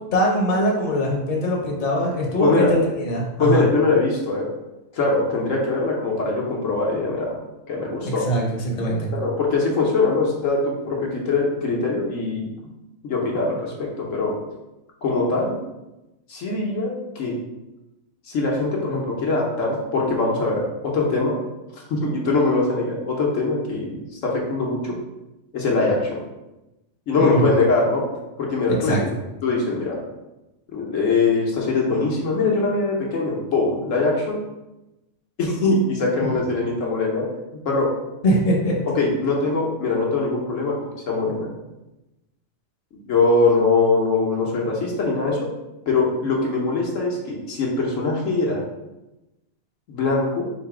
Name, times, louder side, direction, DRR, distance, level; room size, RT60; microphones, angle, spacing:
voice 1, 0.1-3.6 8.3-9.1 27.2-27.4 28.8-29.0 38.2-38.8, equal, 40° left, -2 dB, 1.0 m, -22 dB
voice 2, 2.4-2.7 3.4-4.5 4.9-7.4 7.7-8.2 9.1-12.5 13.0-14.3 15.0-15.6 16.3-17.4 18.3-21.4 21.9-25.0 25.5-26.2 27.1-28.0 28.4-29.0 29.4-30.0 30.7-34.4 35.4-37.2 37.6-37.9 38.9-40.8 41.1-41.5 43.1-45.4 45.9-48.6 49.9-50.5, left 3 dB, 70° left, -2 dB, 1.2 m, -22 dB
4.0 x 2.7 x 4.8 m, 0.98 s
omnidirectional pair, 1.4 m